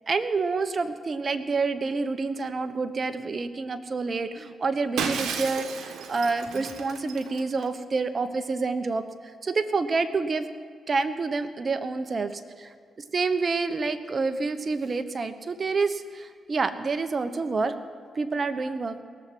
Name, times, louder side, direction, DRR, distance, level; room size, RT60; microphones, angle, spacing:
voice 1, 0.1-9.0 9.4-10.5 10.9-12.7 13.1-17.7 18.1-19.0, right 4 dB, 45° right, 10 dB, 1.1 m, -28 dB
Shatter, 5.0-7.7, right 6 dB, 85° right, 1.3 m, -33 dB
18.5 x 7.5 x 9.4 m, 2.1 s
cardioid pair, 65°, 0 cm